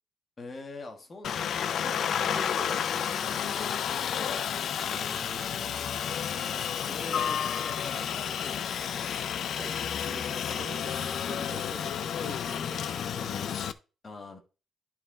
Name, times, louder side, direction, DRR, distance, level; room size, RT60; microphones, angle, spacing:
voice 1, 0.4-1.8 4.9-6.1 6.9-9.5 14.0-14.4, left 3 dB, 25° left, 4 dB, 1.5 m, -44 dB
Aircraft, 1.2-13.7, left 8 dB, 60° left, 0.5 m, -31 dB
voice 2, 1.8-3.9 6.4-7.4 7.7-8.1 9.6-9.7 10.0-13.5, right 3 dB, 20° right, 9 dB, 0.8 m, -46 dB
11.0 x 4.5 x 3.8 m, 0.32 s
cardioid pair, 175°, 0 cm